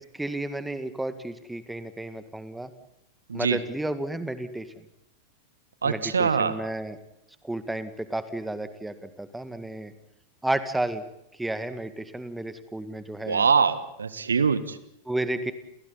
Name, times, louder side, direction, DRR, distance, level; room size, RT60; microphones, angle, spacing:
voice 1, 0.1-2.7 3.3-4.7 5.9-7.0 7.4-9.9 10.4-11.0 11.4-13.5 15.1-15.5, right 1 dB, 5° right, 11 dB, 1.9 m, -32 dB
voice 2, 3.3-3.6 5.8-6.6 13.3-14.8, right 5 dB, 70° right, 14 dB, 1.5 m, -23 dB
29.5 x 29.0 x 4.2 m, 0.81 s
figure-of-eight pair, 90°, 0 cm